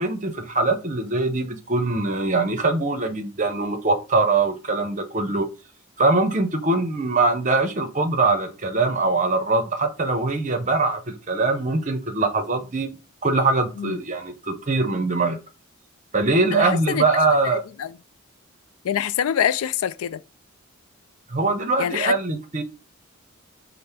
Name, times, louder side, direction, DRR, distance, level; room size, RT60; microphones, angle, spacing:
voice 1, 0.0-5.5 6.0-12.9 13.2-15.4 16.1-17.6 21.3-22.6, right 3 dB, 35° right, 0.7 m, -22 dB
voice 2, 16.5-17.0 17.8-17.9 18.8-20.2 21.8-22.1, left 9 dB, 80° left, 0.3 m, -24 dB
5.2 x 2.1 x 4.3 m
head